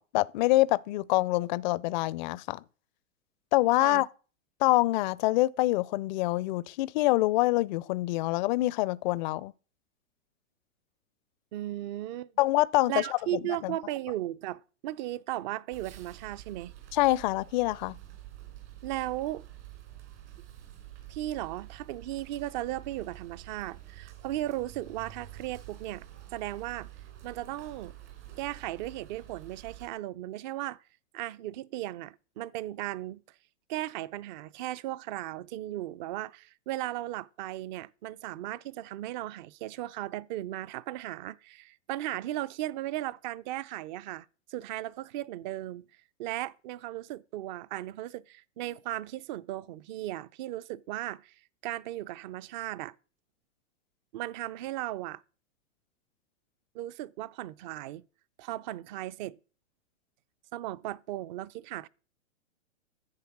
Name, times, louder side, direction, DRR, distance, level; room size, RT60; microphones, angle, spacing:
voice 1, 0.0-2.6 3.5-4.1 4.6-9.5 12.4-13.0 13.6-13.7 16.9-18.0, left 18 dB, 40° left, 0.5 m, -25 dB
voice 2, 11.5-12.3 12.9-16.7 18.8-19.5 21.1-26.9 27.2-28.0 28.4-30.8 31.1-33.2 33.7-45.9 46.2-51.3 51.6-52.9 54.1-55.2 56.7-58.0 58.4-59.4 60.5-61.9, right 14 dB, 35° right, 0.5 m, -36 dB
sound 1, 15.7-29.9, right 13 dB, 65° right, 3.7 m, -48 dB
10.5 x 7.8 x 5.9 m
hypercardioid pair, 130°, 38 cm